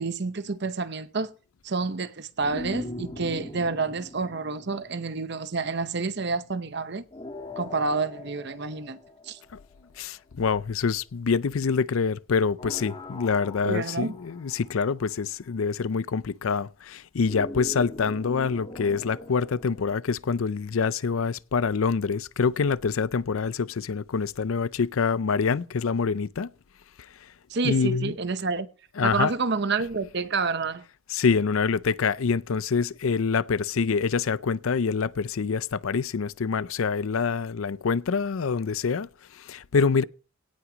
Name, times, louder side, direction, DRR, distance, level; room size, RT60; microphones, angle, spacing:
voice 1, 0.0-1.3 1.6-7.0 7.6-9.0 9.3-9.4 13.6-14.1 27.5-28.7 29.0-30.8, right 4 dB, 55° right, 0.8 m, -29 dB
sound 1, 2.4-5.7 7.1-10.0 12.6-15.2 17.2-20.0, left 1 dB, 25° left, 1.6 m, -41 dB
voice 2, 10.0-26.5 27.6-28.2 28.9-29.3 29.8-29.9 31.1-40.0, left 5 dB, 80° left, 0.5 m, -26 dB
17.5 x 6.0 x 5.1 m
head